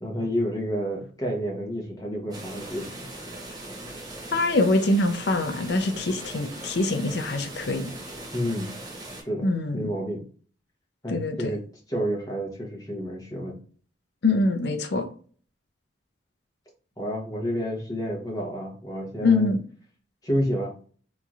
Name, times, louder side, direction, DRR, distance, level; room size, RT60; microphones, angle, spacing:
voice 1, 0.0-2.9 8.3-8.7 9.2-9.5 9.7-10.2 11.0-11.6 11.9-13.6 17.0-19.5 20.2-20.7, equal, 20° left, -2 dB, 0.8 m, -29 dB
sound 1, 2.3-9.2, right 1 dB, 20° right, 0.7 m, -39 dB
voice 2, 4.3-7.9 9.4-9.9 11.1-11.5 14.2-15.1 19.2-19.6, left 2 dB, 60° left, 8 dB, 0.5 m, -24 dB
3.0 x 2.6 x 2.4 m, 0.42 s
head